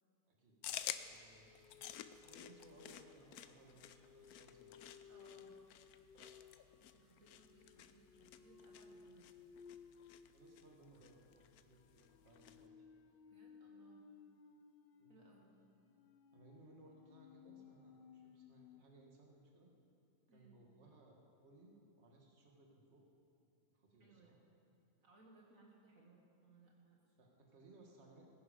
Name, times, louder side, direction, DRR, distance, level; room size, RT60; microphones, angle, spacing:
voice 1, 0.3-1.6 2.2-5.0 6.1-6.7 10.3-12.9 15.0-15.3 16.3-19.7 20.3-23.1 23.7-24.4 27.2-28.2, right 2 dB, 45° right, 0 dB, 1.9 m, -64 dB
sound 1, 0.6-12.7, left 10 dB, 80° left, 1.1 m, -52 dB
sound 2, 0.9-18.9, left 6 dB, 55° left, 0.6 m, -62 dB
voice 2, 5.1-5.5 6.9-9.3 13.3-14.1 15.1-15.5 20.3-20.6 24.0-24.4 25.0-27.2, right 3 dB, 60° right, -2 dB, 1.9 m, -66 dB
18.5 x 10.5 x 5.1 m, 2.8 s
omnidirectional pair, 1.6 m